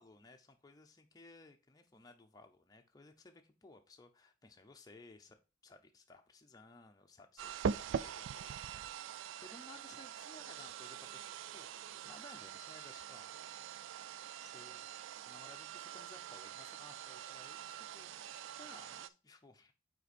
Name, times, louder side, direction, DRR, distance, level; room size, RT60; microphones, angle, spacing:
voice 1, 0.0-5.4 5.6-13.8 14.4-18.1 18.6-19.7, left 2 dB, 20° left, 4 dB, 0.6 m, -59 dB
sound 1, 7.4-19.1, right 7 dB, 75° right, 0.3 m, -44 dB
5.6 x 4.5 x 4.2 m, 0.31 s
head